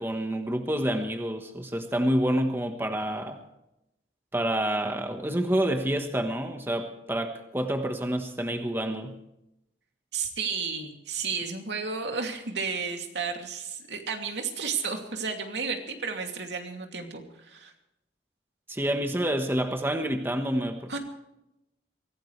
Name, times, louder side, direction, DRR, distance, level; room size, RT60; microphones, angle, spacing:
voice 1, 0.0-3.4 4.3-9.1 18.7-21.0, right 1 dB, 15° right, 5 dB, 1.3 m, -28 dB
voice 2, 10.1-17.7 20.9-21.0, right 5 dB, 75° right, 3 dB, 2.7 m, -32 dB
24.0 x 17.0 x 3.3 m, 0.85 s
head